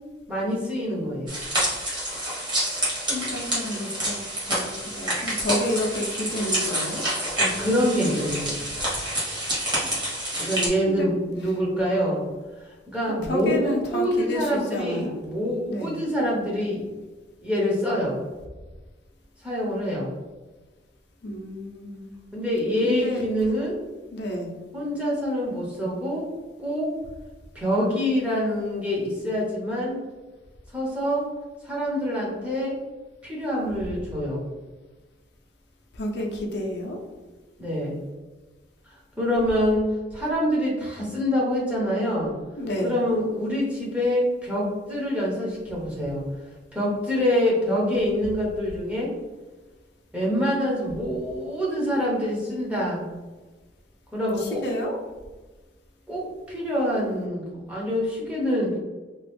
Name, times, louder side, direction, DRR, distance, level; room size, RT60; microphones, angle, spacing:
voice 1, 0.3-1.4 7.4-8.6 9.8-10.0 10.4-12.2 12.9-16.9 17.4-18.2 19.4-20.1 22.3-23.8 24.7-26.3 26.6-26.9 27.5-30.0 30.7-31.2 31.6-32.8 33.2-34.5 37.6-38.0 39.2-39.8 40.1-42.3 42.8-46.2 46.7-49.1 50.1-53.0 54.1-54.6 56.1-58.8, equal, 5° right, -5 dB, 0.8 m, -25 dB
sound 1, 1.3-10.7, right 1 dB, 25° right, 1.3 m, -28 dB
voice 2, 2.6-7.1 10.9-11.1 13.1-15.2 15.7-16.0 21.2-22.1 22.8-23.3 24.1-24.5 35.9-37.0 42.6-43.0 54.4-55.0, left 1 dB, 65° left, 0 dB, 0.6 m, -30 dB
2.9 x 2.3 x 3.3 m, 1.2 s
head